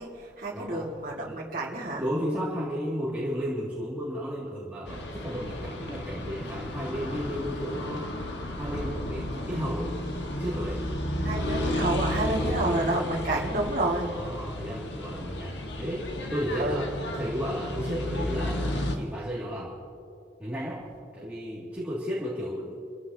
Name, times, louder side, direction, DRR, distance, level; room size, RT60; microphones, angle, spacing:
voice 1, 0.0-2.0 9.3-9.6 11.2-14.1 16.6-16.9, right 2 dB, 50° right, -4 dB, 2.0 m, -30 dB
voice 2, 0.5-0.9 1.3-1.4 2.0-8.1 8.6-9.9 10.4-10.8 12.4-12.6 14.0-19.8 20.4-20.8 21.1-22.8, equal, 10° right, -8 dB, 2.2 m, -33 dB
sound 1, 4.9-18.9, left 1 dB, 75° left, 1.5 m, -33 dB
28.0 x 15.0 x 2.8 m, 2.5 s
head